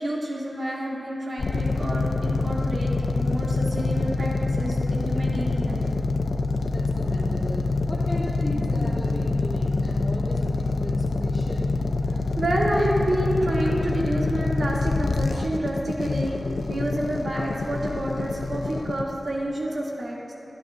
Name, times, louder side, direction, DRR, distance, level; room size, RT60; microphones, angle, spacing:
voice 1, 0.0-5.9 8.5-8.6 12.4-16.4 16.7-20.3, right 1 dB, 70° right, -5 dB, 2.6 m, -29 dB
sound 1, 1.4-19.0, left 3 dB, 90° left, 0.5 m, -26 dB
voice 2, 6.7-11.8, left 1 dB, 25° left, -12 dB, 3.0 m, -35 dB
23.5 x 12.0 x 2.6 m, 2.8 s
wide cardioid pair, 95°, 0 cm